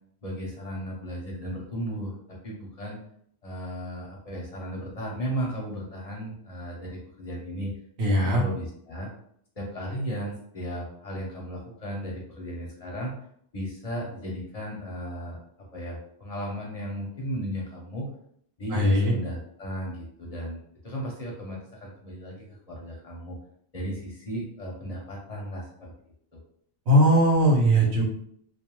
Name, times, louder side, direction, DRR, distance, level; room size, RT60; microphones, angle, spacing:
voice 1, 0.2-3.0 3.4-7.7 8.2-9.1 9.6-13.1 13.5-15.4 15.7-18.1 18.6-23.4 23.7-25.9 26.3-26.4, equal, 45° left, -2 dB, 0.6 m, -35 dB
voice 2, 8.0-8.4 18.7-19.1 26.9-28.0, equal, 80° right, -3 dB, 1.0 m, -19 dB
2.3 x 2.3 x 2.9 m, 0.67 s
omnidirectional pair, 1.1 m